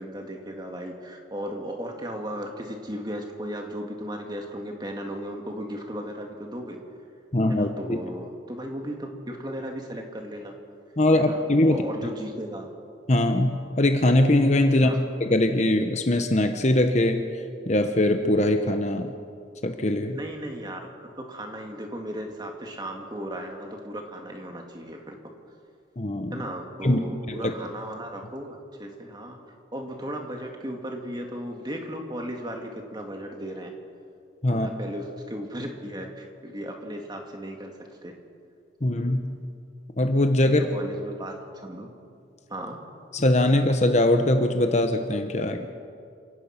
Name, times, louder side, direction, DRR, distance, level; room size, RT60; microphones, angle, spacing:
voice 1, 0.0-6.8 7.5-10.5 11.1-12.7 14.7-15.0 20.1-20.9 21.2-25.2 26.3-29.4 29.7-33.7 34.5-38.1 40.4-41.9 42.5-42.8, equal, 20° right, 2 dB, 2.2 m, -36 dB
voice 2, 7.3-8.0 11.0-11.8 13.1-17.2 17.7-19.1 19.6-20.2 26.0-26.4 26.8-27.0 27.3-27.5 34.4-34.7 38.8-39.4 40.0-40.6 43.1-45.7, left 1 dB, 35° left, 6 dB, 1.0 m, -22 dB
28.0 x 16.5 x 5.9 m, 2.3 s
head